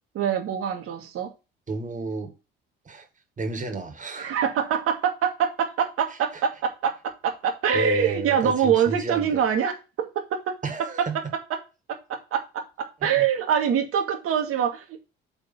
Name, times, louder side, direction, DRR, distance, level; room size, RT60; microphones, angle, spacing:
voice 1, 0.1-1.3 4.2-10.5 11.5-11.6 11.9-15.0, right 8 dB, 50° right, 1.6 m, -25 dB
voice 2, 1.7-2.3 2.9-3.1 3.4-4.4 6.3-6.4 7.7-9.4 10.6-11.2 13.0-13.2, right 4 dB, 25° right, 1.9 m, -31 dB
8.2 x 3.5 x 5.7 m
figure-of-eight pair, 55°, 29 cm